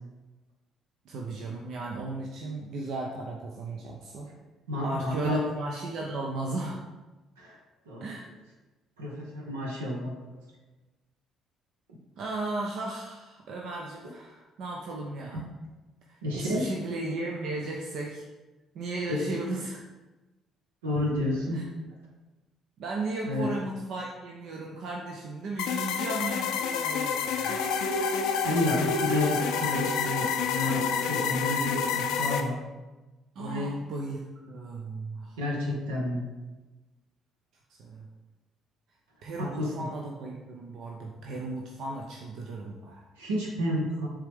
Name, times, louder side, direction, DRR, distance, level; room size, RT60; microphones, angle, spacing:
voice 1, 1.1-4.3 4.8-6.8 8.0-8.2 12.2-15.5 16.1-18.3 18.7-19.8 21.5-21.6 22.8-27.7 33.4-35.4 37.7-38.1 39.2-43.1, right 2 dB, 60° right, -1 dB, 0.6 m, -35 dB
voice 2, 4.7-5.4 7.4-7.6 7.9-8.1 9.0-10.4 15.3-15.4 16.2-16.7 19.1-19.2 20.8-21.6 23.2-23.5 28.4-32.6 33.4-33.7 35.4-36.2 39.4-39.9 43.2-44.1, left 1 dB, 80° right, -2 dB, 1.1 m, -30 dB
sound 1, 25.6-32.4, left 6 dB, 70° left, 0.5 m, -28 dB
7.3 x 3.6 x 3.5 m, 1.1 s
figure-of-eight pair, 50°, 0 cm